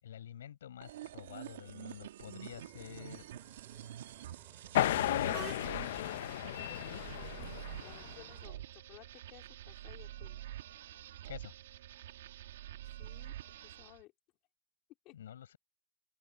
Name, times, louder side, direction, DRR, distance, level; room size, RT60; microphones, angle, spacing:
voice 1, 0.0-3.2 5.0-5.5 11.3-11.5 15.1-15.6, left 10 dB, 80° left, 5.6 m, -48 dB
sound 1, 0.8-14.0, right 13 dB, 60° right, 1.4 m, -47 dB
sound 2, 2.5-8.4, right 10 dB, 20° right, 5.4 m, -54 dB
sound 3, 4.7-8.2, left 13 dB, 50° left, 0.5 m, -34 dB
voice 2, 7.8-10.5 12.9-14.1 15.0-15.1, left 19 dB, 30° left, 2.9 m, -58 dB
supercardioid pair, 170°, 0 cm